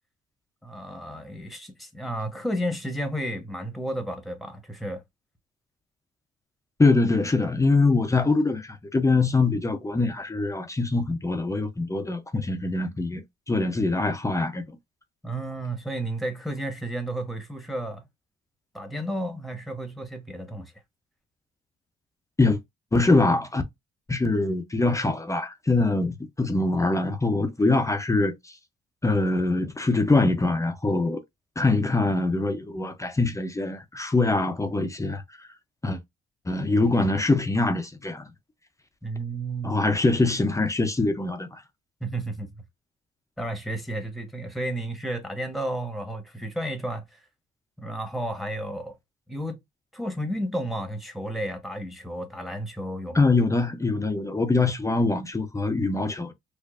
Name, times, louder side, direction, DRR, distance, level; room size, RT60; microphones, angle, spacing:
voice 1, 0.6-5.0 15.2-18.0 18.7-20.7 39.0-39.8 42.0-42.5 43.4-47.2 47.8-48.9 49.3-49.6 49.9-53.3, right 1 dB, ahead, 1.1 m, -32 dB
voice 2, 6.8-13.2 13.5-14.6 22.4-22.6 22.9-23.6 24.1-28.5 29.0-31.2 31.6-35.5 35.8-36.0 36.5-38.2 39.6-41.6 53.1-56.3, left 3 dB, 15° left, 0.6 m, -23 dB
4.4 x 2.5 x 2.5 m
cardioid pair, 90°, 20 cm